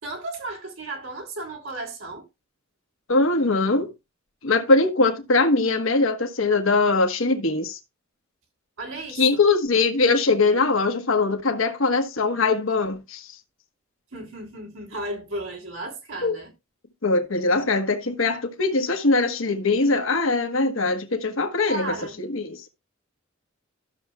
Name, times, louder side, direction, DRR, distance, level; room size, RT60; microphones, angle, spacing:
voice 1, 0.0-2.3 8.8-9.4 14.1-16.5 21.6-22.2, right 2 dB, 75° right, 3.2 m, -34 dB
voice 2, 3.1-3.9 4.4-7.8 9.1-13.3 16.2-16.4 17.0-22.7, left 3 dB, 75° left, 1.2 m, -22 dB
12.5 x 6.9 x 2.4 m
head